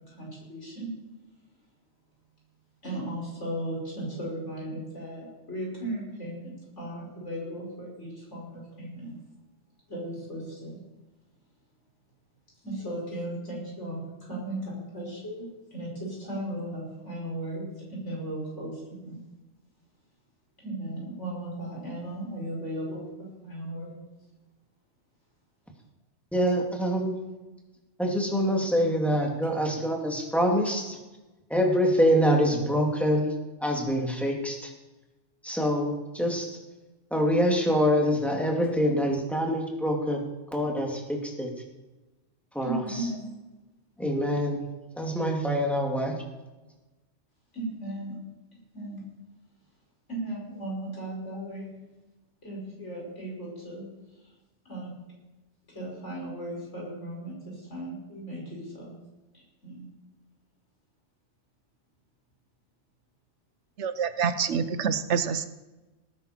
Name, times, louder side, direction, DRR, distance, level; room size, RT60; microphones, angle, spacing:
voice 1, 0.2-0.9 2.8-9.1 9.9-10.8 12.6-14.0 14.3-15.4 15.7-17.6 17.9-19.2 20.6-23.0 23.4-24.0 42.6-43.2 47.5-48.2 48.7-49.0 50.1-51.7 52.4-53.9 54.7-54.9 55.7-59.0 59.6-59.9, right 1 dB, 85° left, -4 dB, 6.1 m, -36 dB
voice 2, 26.3-27.1 28.0-31.0 31.5-33.3 33.6-34.7 35.4-36.5 37.1-41.5 42.5-42.8 44.0-44.6 44.9-46.2, equal, ahead, 0 dB, 2.4 m, -25 dB
voice 3, 63.8-65.4, right 6 dB, 80° right, 12 dB, 1.1 m, -27 dB
18.5 x 9.9 x 4.5 m, 1.1 s
omnidirectional pair, 1.2 m